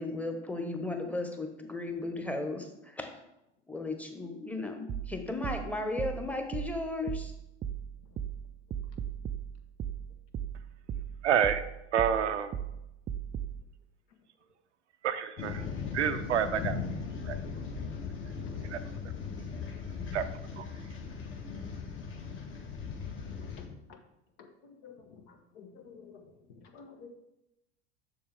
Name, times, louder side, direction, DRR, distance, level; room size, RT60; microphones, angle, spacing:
voice 1, 0.0-3.1 3.7-7.3, left 2 dB, 5° left, 4 dB, 1.1 m, -35 dB
sound 1, 4.9-13.6, right 9 dB, 25° right, 0.4 m, -38 dB
voice 2, 11.2-11.6 11.9-12.5 15.0-15.7 15.9-16.8 17.3-17.4 18.7-18.8 20.1-20.2 20.6-20.7, right 8 dB, 80° right, 10 dB, 0.6 m, -28 dB
sound 2, 15.4-23.7, left 5 dB, 35° left, 1.5 m, -38 dB
voice 3, 25.6-26.2 26.7-27.1, left 6 dB, 60° left, 4 dB, 1.3 m, -49 dB
7.0 x 6.2 x 3.5 m, 0.86 s
figure-of-eight pair, 75°, 35 cm